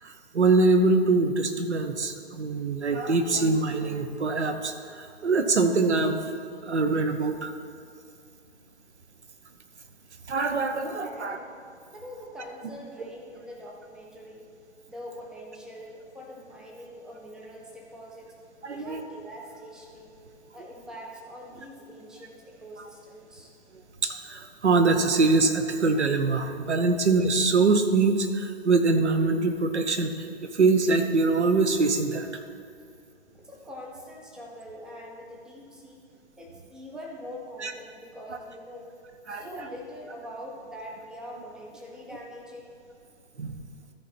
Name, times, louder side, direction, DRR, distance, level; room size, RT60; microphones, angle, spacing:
voice 1, 0.0-6.2 6.6-7.5 10.3-11.4 18.6-19.0 24.0-32.3 37.6-37.7 39.3-39.7 43.4-43.6, right 3 dB, 85° right, 7 dB, 1.0 m, -24 dB
voice 2, 10.7-11.5 11.9-14.5 14.9-18.4 18.7-20.2 20.5-23.5 33.3-36.0 36.4-38.9 39.3-42.7, equal, ahead, -1 dB, 0.4 m, -43 dB
13.5 x 4.5 x 4.3 m, 2.4 s
hypercardioid pair, 130°, 33 cm